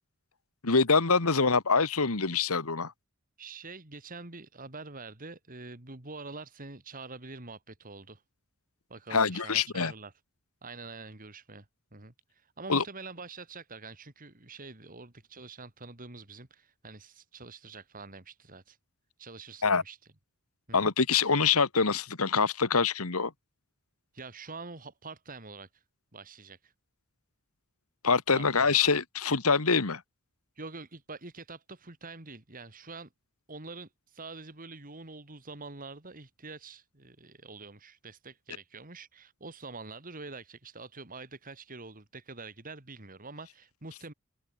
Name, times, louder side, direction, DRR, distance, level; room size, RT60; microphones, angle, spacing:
voice 1, 0.6-2.9 9.1-9.9 12.7-12.8 19.6-19.8 20.7-23.3 28.0-30.0, left 5 dB, 80° left, 1.7 m, -25 dB
voice 2, 3.4-8.2 8.9-10.1 10.6-11.6 11.9-18.8 19.2-20.0 20.7-20.9 24.1-25.8 26.1-26.7 28.3-28.9 30.6-33.1 33.5-44.1, right 3 dB, 40° right, 2.6 m, -45 dB
open air
head